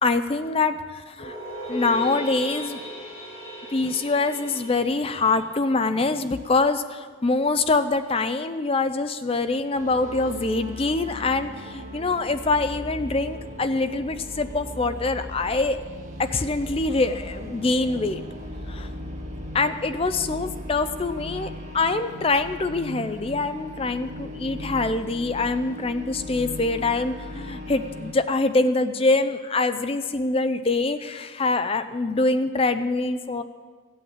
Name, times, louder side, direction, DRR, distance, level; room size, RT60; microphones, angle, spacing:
voice 1, 0.0-1.4 1.7-2.8 3.7-15.8 16.2-18.2 18.7-18.9 19.5-33.4, left 3 dB, 30° left, 11 dB, 0.5 m, -24 dB
sound 1, 1.2-6.4, equal, 75° left, 3.8 m, -37 dB
sound 2, 9.7-28.1, equal, 35° right, 1.5 m, -37 dB
15.0 x 8.5 x 7.3 m, 1.6 s
head